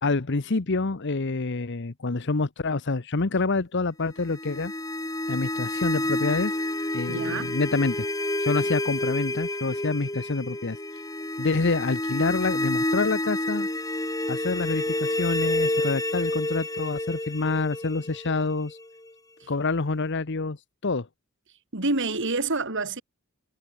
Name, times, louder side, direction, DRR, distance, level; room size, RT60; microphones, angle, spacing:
voice 1, 0.0-4.7 5.3-6.6 6.9-8.1 8.4-10.8 11.4-13.7 14.3-18.8 19.5-20.6 20.8-21.1, left 3 dB, 55° left, 1.0 m, -27 dB
sound 1, 4.2-19.1, left 1 dB, 15° left, 6.1 m, -29 dB
voice 2, 7.1-7.6 19.4-19.5 21.7-23.0, right 3 dB, 60° right, 3.5 m, -27 dB
head